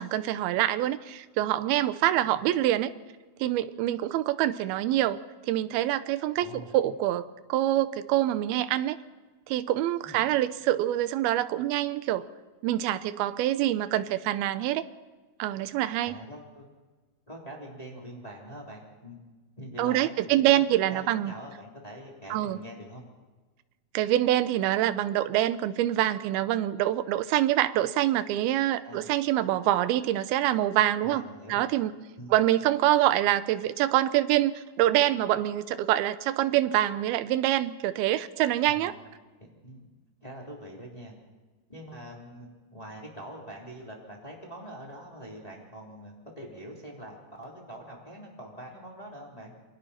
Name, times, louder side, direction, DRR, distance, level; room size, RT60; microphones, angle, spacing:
voice 1, 0.0-2.9 3.4-5.2 5.5-9.0 9.5-12.3 12.6-14.9 15.4-16.1 19.8-21.3 22.3-22.6 23.9-31.9 32.3-38.9, right 13 dB, 85° right, 13 dB, 2.7 m, -25 dB
voice 2, 6.4-6.7 10.0-10.2 16.0-16.7 17.3-19.2 19.6-20.6 20.9-23.0 28.7-29.1 31.0-31.8 32.1-32.4 38.7-38.9 39.4-39.9 40.2-41.2 41.7-49.5, equal, 10° left, -2 dB, 3.1 m, -44 dB
28.5 x 22.0 x 4.3 m, 1.3 s
omnidirectional pair, 4.3 m